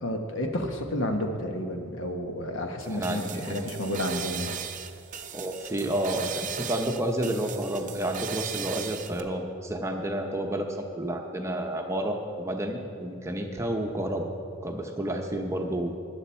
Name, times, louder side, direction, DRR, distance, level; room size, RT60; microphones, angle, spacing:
voice 1, 0.0-4.5, left 1 dB, 60° left, 4 dB, 1.1 m, -31 dB
sound 1, 2.8-9.2, right 8 dB, 35° right, 0.6 m, -37 dB
voice 2, 2.9-3.7 5.3-14.3 14.6-16.0, right 1 dB, 15° right, 2 dB, 0.8 m, -30 dB
14.0 x 10.0 x 4.5 m, 2.5 s
head